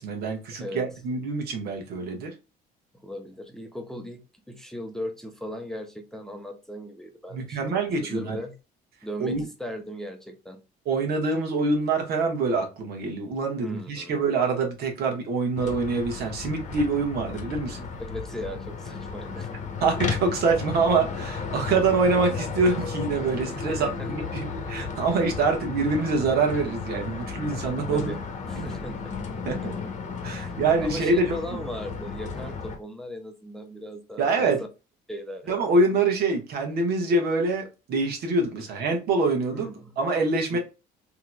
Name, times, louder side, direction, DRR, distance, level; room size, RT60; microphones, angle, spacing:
voice 1, 0.0-2.3 7.3-8.4 9.2-9.5 10.9-17.8 19.8-28.1 28.6-28.7 29.5-29.7 30.2-31.4 34.2-34.6 35.5-39.7 40.0-40.6, right 3 dB, 70° right, 1.2 m, -25 dB
voice 2, 3.0-4.2 4.5-7.8 8.1-8.5 9.0-10.6 13.6-14.2 18.0-19.5 23.5-24.3 24.8-25.0 27.9-28.2 28.5-29.1 30.3-30.5 30.8-34.5 35.1-35.6 39.5-40.0 40.5-40.6, equal, 5° left, 0.6 m, -37 dB
sound 1, 15.5-32.8, left 5 dB, 45° left, 0.9 m, -34 dB
3.6 x 2.9 x 2.2 m
cardioid pair, 110°, 17 cm